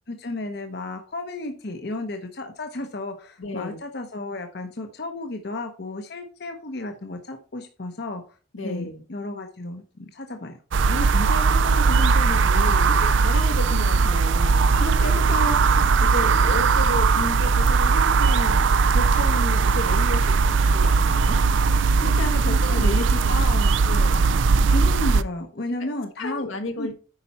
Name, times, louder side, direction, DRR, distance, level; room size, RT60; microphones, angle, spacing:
voice 1, 0.1-8.2 8.6-10.6 22.5-24.1 24.7-26.5 26.8-26.9, left 2 dB, 55° left, 5 dB, 0.8 m, -33 dB
voice 2, 3.4-3.8 8.5-9.0 10.9-20.3 20.7-21.4 22.0-23.4 23.9-24.3 25.8-25.9 26.2-26.9, left 2 dB, 90° left, 5 dB, 1.6 m, -32 dB
sound 1, 10.7-25.2, right 4 dB, 70° right, 0.4 m, -19 dB
8.8 x 5.4 x 4.2 m, 0.37 s
head